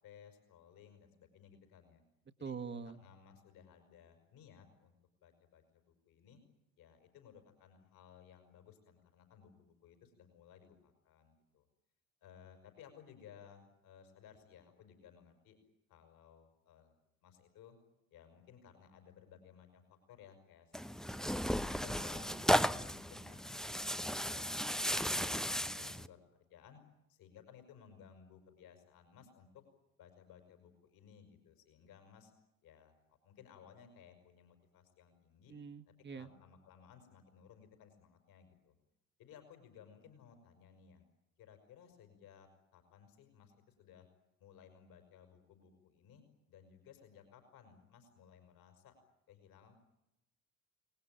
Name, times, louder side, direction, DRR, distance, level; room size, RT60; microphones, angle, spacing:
voice 1, 0.0-2.0 2.4-2.6 2.9-4.9 5.2-6.4 6.8-11.6 12.2-15.6 15.9-16.9 17.2-17.8 18.1-20.7 21.1-22.4 22.6-26.8 27.1-29.6 30.0-32.3 32.6-35.5 35.9-38.8 39.2-41.0 41.4-44.1 44.4-46.2 46.5-49.0 49.3-49.7, left 8 dB, 55° left, 7 dB, 5.5 m, -59 dB
voice 2, 2.4-3.0 35.5-36.3, right 5 dB, 25° right, 7 dB, 1.9 m, -44 dB
Tearing, 20.7-26.1, equal, ahead, 0.9 m, -35 dB
29.0 x 20.0 x 9.0 m, 0.88 s
figure-of-eight pair, 55°, 41 cm